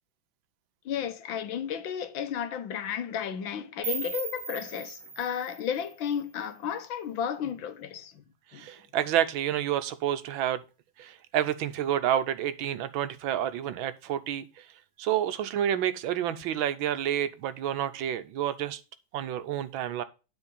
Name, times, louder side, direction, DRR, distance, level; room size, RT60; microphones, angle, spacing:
voice 1, 0.9-8.2 8.5-8.7, left 8 dB, 80° left, 1.7 m, -33 dB
sound 1, 3.8-6.8, right 5 dB, 50° right, 1.5 m, -39 dB
voice 2, 8.5-10.6 11.0-14.7 15.0-18.8 19.1-20.0, right 10 dB, 80° right, 1.6 m, -29 dB
9.8 x 4.4 x 5.3 m
omnidirectional pair, 2.2 m